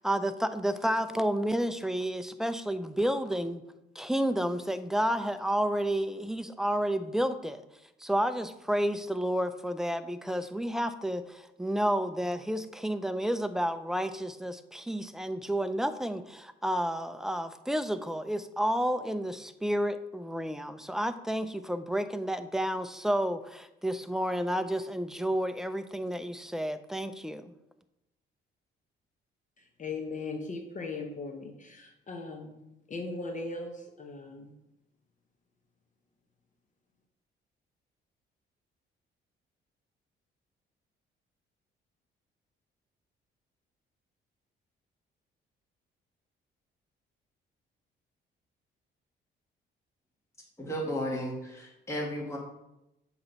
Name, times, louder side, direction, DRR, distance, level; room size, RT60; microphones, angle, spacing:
voice 1, 0.0-3.6 4.0-7.6 8.0-27.5, equal, ahead, 11 dB, 0.4 m, -31 dB
voice 2, 29.6-32.6 32.9-34.5, left 3 dB, 40° left, 3 dB, 0.9 m, -38 dB
voice 3, 50.6-52.4, equal, 15° left, -3 dB, 1.6 m, -34 dB
7.6 x 3.0 x 5.3 m, 0.90 s
cardioid pair, 90°, 20 cm